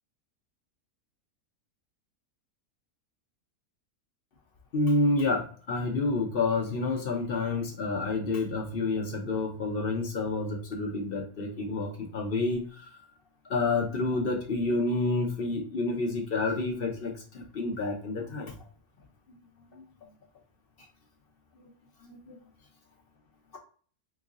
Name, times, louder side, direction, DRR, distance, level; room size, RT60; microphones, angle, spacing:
voice 1, 4.7-12.9 13.5-18.5 19.7-19.8 21.6-21.7 22.0-22.4, left 3 dB, 55° left, 2 dB, 0.7 m, -29 dB
3.0 x 2.6 x 3.7 m, 0.43 s
omnidirectional pair, 1.7 m